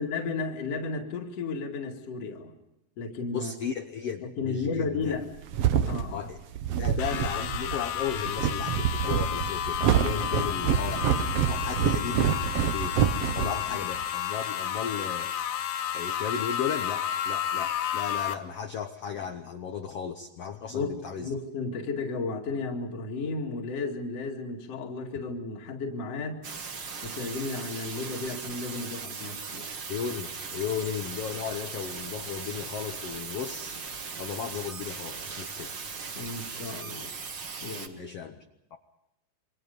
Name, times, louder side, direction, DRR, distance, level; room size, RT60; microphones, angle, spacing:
voice 1, 0.0-2.5 3.0-3.5 4.4-5.2 5.9-6.3 10.4-10.7 20.7-26.4 27.0-29.7 36.1-37.1 37.6-38.4, left 4 dB, 45° left, 1 dB, 2.9 m, -34 dB
voice 2, 3.3-5.1 6.1-6.4 6.8-11.0 11.5-13.0 13.3-15.3 15.9-21.3 29.9-33.8 34.2-35.7 37.9-38.3 38.7-38.8, left 8 dB, 85° left, 7 dB, 1.3 m, -35 dB
sound 1, 5.1-14.1, right 9 dB, 75° right, 1.4 m, -27 dB
sound 2, 7.0-18.3, left 10 dB, 70° left, 2.6 m, -31 dB
sound 3, 26.4-37.9, right 5 dB, 40° right, 2.2 m, -38 dB
28.0 x 24.5 x 5.3 m, 0.90 s
omnidirectional pair, 4.3 m